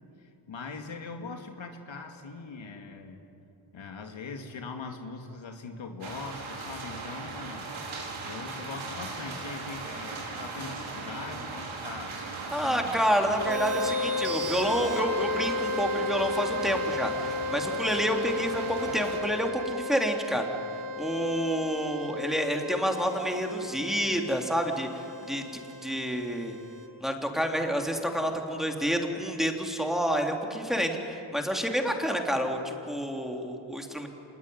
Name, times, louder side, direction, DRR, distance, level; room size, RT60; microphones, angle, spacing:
voice 1, 0.2-3.2 3.7-7.7 8.2-12.2 12.5-13.5, left 4 dB, 70° left, 4 dB, 2.5 m, -41 dB
sound 1, 6.0-19.2, right 3 dB, 75° right, 5.3 m, -38 dB
voice 2, 12.5-20.5 21.0-25.4 25.8-26.6 27.0-34.1, equal, ahead, 2 dB, 3.5 m, -29 dB
sound 2, 13.4-26.9, left 2 dB, 40° right, 3.1 m, -34 dB
26.0 x 21.0 x 9.7 m, 2.9 s
cardioid pair, 65°, 48 cm